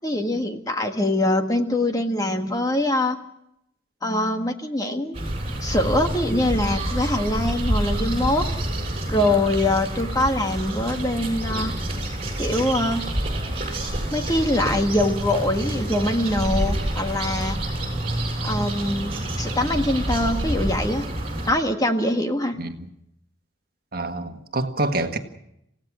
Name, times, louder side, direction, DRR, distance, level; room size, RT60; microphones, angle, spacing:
voice 1, 0.0-3.2 4.0-5.2 5.6-8.4 9.1-11.7 12.4-13.0 14.1-17.6 18.4-19.1 19.4-21.0 21.5-22.6, left 1 dB, 20° left, 5 dB, 1.6 m, -23 dB
sound 1, 5.1-21.5, right 1 dB, 30° right, 6.7 m, -28 dB
voice 2, 22.6-22.9 23.9-25.2, right 2 dB, 50° right, 6 dB, 1.7 m, -27 dB
28.0 x 16.5 x 6.2 m, 0.79 s
head